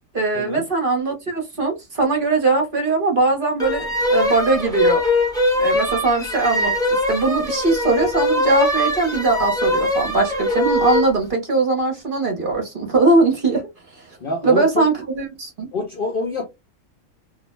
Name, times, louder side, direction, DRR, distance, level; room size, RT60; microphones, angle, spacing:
voice 1, 0.1-5.0 5.6-6.7 7.1-13.6 13.9-14.0 14.4-15.7, right 3 dB, 45° right, 0.8 m, -20 dB
sound 1, 3.6-11.1, left 1 dB, 5° left, 0.7 m, -21 dB
voice 2, 14.2-14.9 15.7-16.4, left 3 dB, 60° left, 0.6 m, -26 dB
2.4 x 2.0 x 3.0 m
omnidirectional pair, 1.5 m